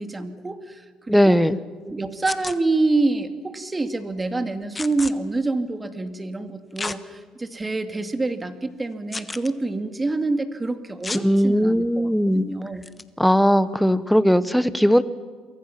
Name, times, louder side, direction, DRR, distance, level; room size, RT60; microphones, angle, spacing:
voice 1, 0.0-1.4 1.8-12.8, right 3 dB, 20° right, 7 dB, 2.3 m, -27 dB
voice 2, 1.1-1.6 11.2-12.5 13.2-15.0, equal, ahead, 14 dB, 1.1 m, -18 dB
sound 1, 2.2-2.6 4.7-5.1 6.8-7.0 7.6-7.7 9.1-9.5 11.0-11.2 12.8-13.0, left 3 dB, 25° left, 1.3 m, -31 dB
28.5 x 23.5 x 6.0 m, 1.5 s
supercardioid pair, 70°, 0 cm